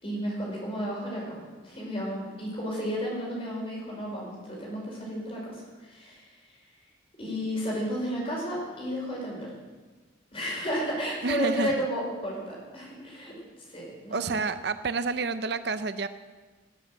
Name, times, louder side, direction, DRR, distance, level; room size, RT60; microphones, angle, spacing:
voice 1, 0.0-6.3 7.2-9.5 10.3-14.4, equal, 30° left, -3 dB, 5.2 m, -33 dB
voice 2, 11.2-11.8 14.1-16.1, right 3 dB, 55° right, 11 dB, 0.6 m, -29 dB
18.5 x 8.2 x 7.7 m, 1.3 s
head